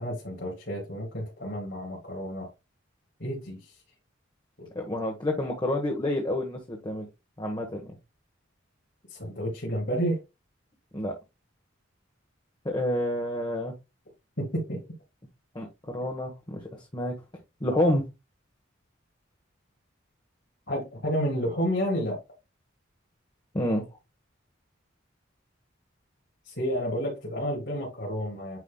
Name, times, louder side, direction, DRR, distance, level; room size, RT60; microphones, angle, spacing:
voice 1, 0.0-2.5 3.2-3.6 4.6-4.7 9.1-10.2 14.4-14.8 20.7-22.2 26.4-28.6, equal, 55° left, 3.3 m, -30 dB
voice 2, 4.7-7.0 7.4-7.8 10.9-11.1 12.6-13.7 15.5-16.6 16.9-17.1 17.6-18.0 23.5-23.8, left 1 dB, 25° left, 1.2 m, -28 dB
9.4 x 4.7 x 2.2 m
head